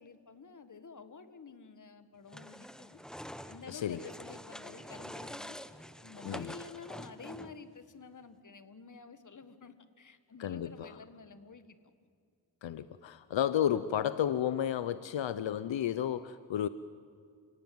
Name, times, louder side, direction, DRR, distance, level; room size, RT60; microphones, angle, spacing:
voice 1, 0.0-3.0 3.5-5.6 6.0-11.8, left 4 dB, 45° left, 11 dB, 1.8 m, -50 dB
sound 1, 2.3-7.7, equal, ahead, 1.0 m, -46 dB
voice 2, 3.7-4.0 6.2-6.5 10.4-10.9 12.6-16.7, left 10 dB, 80° left, 14 dB, 0.8 m, -32 dB
29.5 x 18.0 x 9.5 m, 2.3 s
wide cardioid pair, 85°, 44 cm